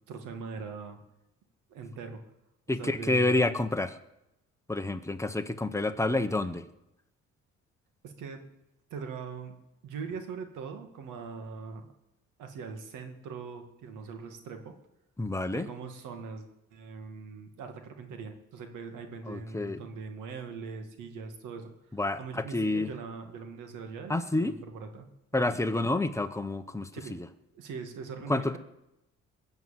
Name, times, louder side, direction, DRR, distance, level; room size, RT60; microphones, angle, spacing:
voice 1, 0.1-1.0 1.7-2.2 2.7-3.5 8.0-8.4 8.9-9.5 9.8-11.9 12.4-14.7 15.5-21.7 22.2-25.6 26.9-27.2 27.5-28.6, right 5 dB, 90° right, 5 dB, 2.2 m, -41 dB
voice 2, 2.7-4.0 4.7-6.6 15.2-15.7 19.3-19.8 21.9-22.9 24.1-24.5 25.3-27.3 28.3-28.6, left 2 dB, 10° left, 8 dB, 1.1 m, -29 dB
21.5 x 8.0 x 7.6 m, 0.89 s
cardioid pair, 90°, 30 cm